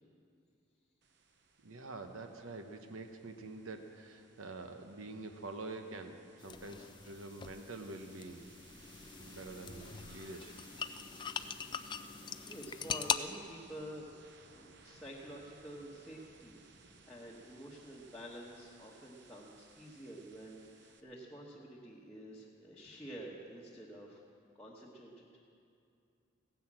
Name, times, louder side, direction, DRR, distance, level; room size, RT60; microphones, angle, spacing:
sound 1, 1.0-21.0, right 4 dB, 55° right, 0.9 m, -62 dB
voice 1, 1.6-8.5 9.2-10.5 10.9-11.0 14.9-15.0, right 2 dB, 75° right, 6 dB, 1.0 m, -46 dB
sound 2, 6.4-13.2, left 7 dB, 20° left, 0.3 m, -41 dB
voice 2, 12.3-14.1 14.5-24.2 24.5-25.3, right 1 dB, 5° left, -6 dB, 1.2 m, -49 dB
16.5 x 10.0 x 7.6 m, 2.5 s
head